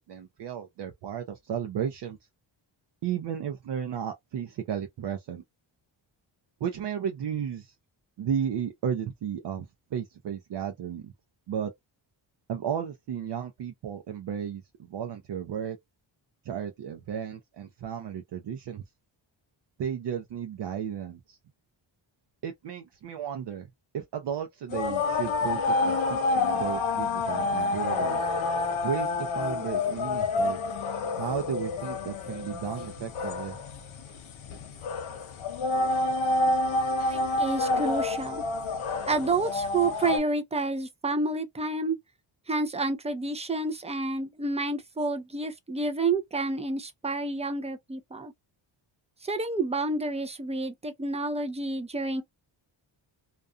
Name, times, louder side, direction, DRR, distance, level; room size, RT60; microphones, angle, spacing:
voice 1, 0.0-2.2 3.0-5.4 6.6-7.7 8.2-11.1 11.5-11.7 12.5-15.8 16.4-18.8 19.8-21.4 22.4-23.7 23.9-28.2 28.8-30.6 31.2-33.6, right 8 dB, 60° right, 0.6 m, -34 dB
sound 1, 24.7-40.2, left 3 dB, 75° left, 0.8 m, -28 dB
voice 2, 37.1-38.4 39.1-42.0 42.5-48.3 49.2-52.2, right 3 dB, 15° right, 0.4 m, -29 dB
2.4 x 2.3 x 2.4 m
cardioid pair, 100°, 48 cm